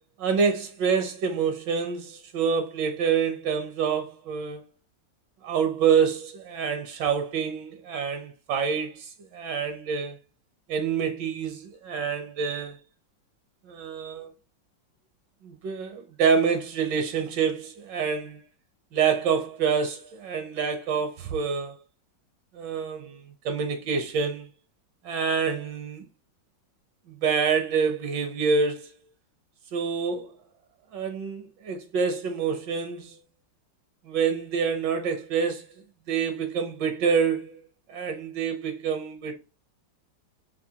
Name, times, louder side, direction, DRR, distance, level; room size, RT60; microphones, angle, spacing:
voice 1, 0.2-4.6 5.4-10.2 10.7-12.8 13.7-14.3 15.4-18.4 18.9-21.7 22.5-24.5 25.0-26.0 27.2-28.9 29.7-30.3 30.9-33.2 34.0-35.7 36.1-37.6 37.9-39.4, right 6 dB, 75° right, 1.3 m, -27 dB
5.4 x 2.6 x 2.7 m
omnidirectional pair, 2.0 m